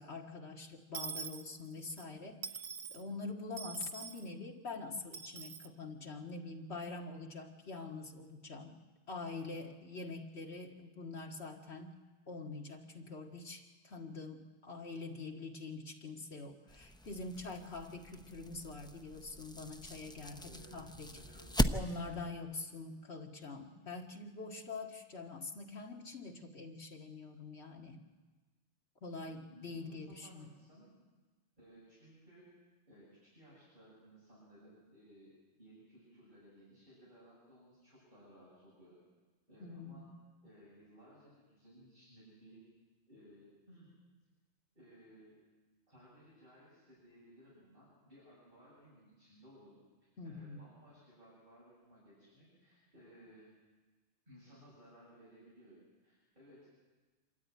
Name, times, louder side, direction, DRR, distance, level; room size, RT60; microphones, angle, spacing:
voice 1, 0.0-2.4 2.9-8.8 9.1-12.0 12.3-21.1 21.7-28.0 29.0-30.5 39.6-40.2 50.2-50.7, left 3 dB, 70° left, 2 dB, 2.2 m, -45 dB
Dishes pots and pans / Coin (dropping), 0.9-2.1 2.4-3.0 3.6-4.3 5.1-5.7, right 6 dB, 70° right, 1.1 m, -44 dB
sound 1, 16.7-22.3, equal, 5° left, 0.4 m, -39 dB
voice 2, 20.4-20.9 21.1-21.7 29.1-30.9 31.6-32.5 32.9-39.0 39.5-40.1 40.4-42.7 43.1-43.9 44.7-45.3 45.9-53.5 54.3-55.8 56.0-56.7, equal, 45° right, -9 dB, 8.1 m, -60 dB
26.5 x 13.5 x 9.6 m, 1.3 s
omnidirectional pair, 1.1 m